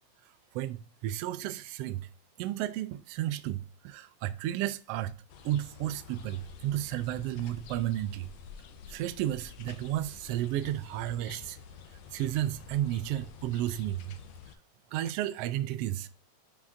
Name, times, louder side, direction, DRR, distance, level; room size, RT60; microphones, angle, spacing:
voice 1, 0.5-2.1 2.4-5.1 5.4-8.3 8.9-11.6 12.1-14.2 14.9-16.1, right 13 dB, 85° right, 1.3 m, -32 dB
sound 1, 5.3-14.6, left 6 dB, 70° left, 1.9 m, -49 dB
10.5 x 6.3 x 2.6 m
omnidirectional pair, 3.3 m